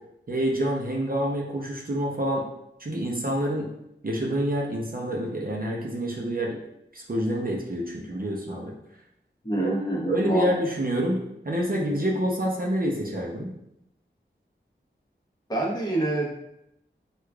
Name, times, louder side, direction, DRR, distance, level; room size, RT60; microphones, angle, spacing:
voice 1, 0.3-2.4 2.8-3.7 4.0-6.6 6.9-8.7 9.6-9.7 10.0-13.5, equal, 45° right, -2 dB, 0.6 m, -27 dB
voice 2, 9.4-10.4 15.5-16.3, right 2 dB, 20° left, -4 dB, 1.0 m, -26 dB
4.7 x 2.4 x 2.3 m, 0.81 s
wide cardioid pair, 55°, 20 cm